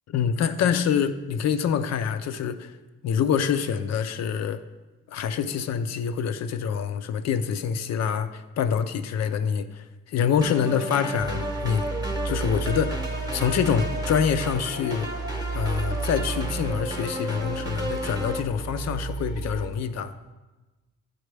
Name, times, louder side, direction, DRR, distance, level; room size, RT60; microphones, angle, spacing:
voice 1, 0.1-2.7 3.0-4.6 5.1-11.8 12.2-15.1 15.5-20.1, left 7 dB, 60° left, 10 dB, 0.6 m, -26 dB
sound 1, 10.4-18.4, equal, 15° right, 1.0 m, -33 dB
sound 2, 11.2-19.7, right 4 dB, 10° left, 0.8 m, -33 dB
11.5 x 4.3 x 3.3 m, 1.2 s
cardioid pair, 90°, 30 cm